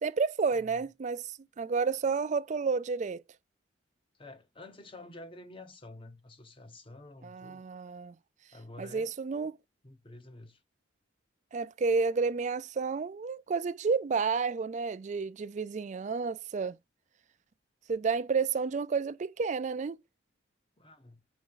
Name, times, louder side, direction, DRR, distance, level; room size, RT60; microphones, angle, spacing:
voice 1, 0.0-3.2 7.2-8.2 8.8-9.5 11.5-16.8 17.9-20.0, right 5 dB, 40° right, 0.3 m, -31 dB
voice 2, 4.1-7.7 8.5-9.1 9.8-10.6 20.8-21.2, left 2 dB, 25° left, 0.8 m, -49 dB
5.2 x 3.4 x 5.6 m
head